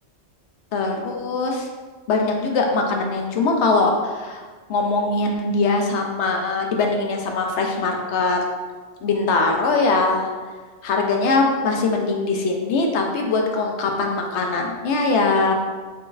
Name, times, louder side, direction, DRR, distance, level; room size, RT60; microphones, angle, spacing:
voice 1, 0.7-1.7 2.1-4.4 4.7-8.4 9.0-10.3 10.8-15.5, left 3 dB, 85° left, 2 dB, 0.9 m, -21 dB
4.0 x 3.8 x 2.6 m, 1.4 s
omnidirectional pair, 1.2 m